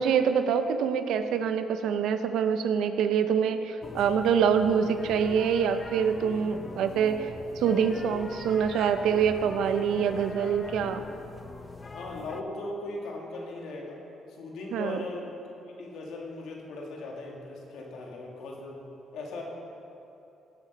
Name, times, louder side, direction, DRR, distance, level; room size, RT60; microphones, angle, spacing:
voice 1, 0.0-7.3 7.6-11.0 14.7-15.0, right 7 dB, 85° right, 9 dB, 0.7 m, -25 dB
sound 1, 3.8-12.4, left 3 dB, 30° left, 0.7 m, -41 dB
voice 2, 11.9-14.0 14.4-15.4 15.8-19.4, left 2 dB, 80° left, -1 dB, 2.3 m, -38 dB
17.0 x 7.5 x 5.4 m, 2.8 s
cardioid pair, 90°, 0 cm